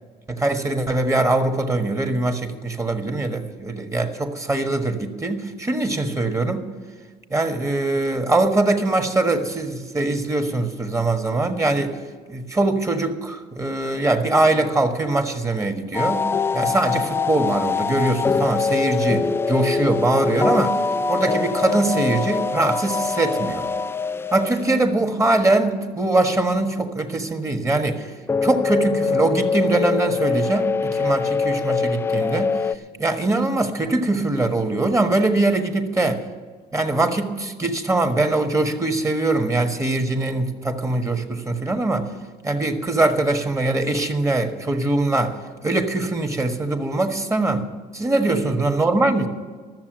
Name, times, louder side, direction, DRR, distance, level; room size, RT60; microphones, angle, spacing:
voice 1, 0.3-6.7 7.3-12.0 12.3-16.3 16.5-20.8 21.1-23.7 24.3-28.1 28.4-32.5 33.0-36.2 36.7-42.1 42.4-45.3 45.6-47.6 47.9-49.3, right 2 dB, 20° right, 5 dB, 1.5 m, -22 dB
sound 1, 15.9-25.1 28.3-32.8, left 4 dB, 15° left, 0.3 m, -23 dB
13.5 x 7.1 x 9.0 m, 1.5 s
cardioid pair, 110°, 17 cm